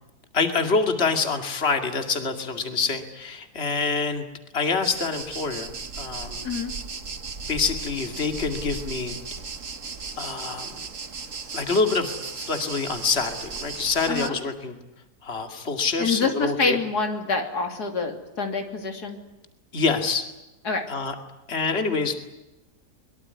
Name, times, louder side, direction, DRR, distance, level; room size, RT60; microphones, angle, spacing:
voice 1, 0.3-4.2 4.5-6.4 7.5-9.2 10.2-10.7 11.5-14.8 15.2-16.8 19.7-20.3 20.9-21.1 21.5-22.1, left 4 dB, 40° left, 6 dB, 2.6 m, -26 dB
sound 1, 4.8-14.3, right 5 dB, 55° right, 1.9 m, -36 dB
voice 2, 6.4-6.7 14.1-14.4 16.0-19.2 20.6-20.9, left 4 dB, 85° left, 5 dB, 3.5 m, -26 dB
23.0 x 23.0 x 9.6 m, 0.96 s
omnidirectional pair, 1.6 m